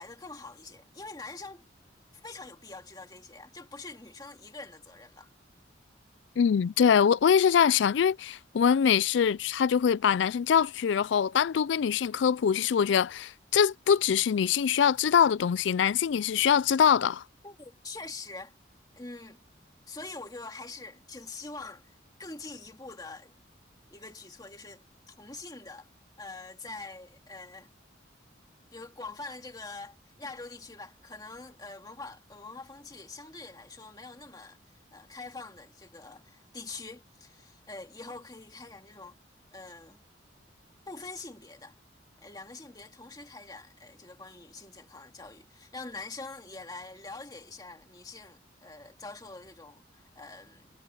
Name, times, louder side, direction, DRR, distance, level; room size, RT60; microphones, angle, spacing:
voice 1, 0.0-1.6 2.1-5.3 17.4-18.6 18.9-19.4 19.9-21.9 22.2-23.3 23.9-25.9 26.2-27.7 28.7-34.6 34.9-39.2 39.5-40.0 40.9-41.8 42.2-50.7, left 3 dB, 20° left, 2.1 m, -44 dB
voice 2, 6.4-17.2, left 7 dB, 75° left, 0.4 m, -23 dB
head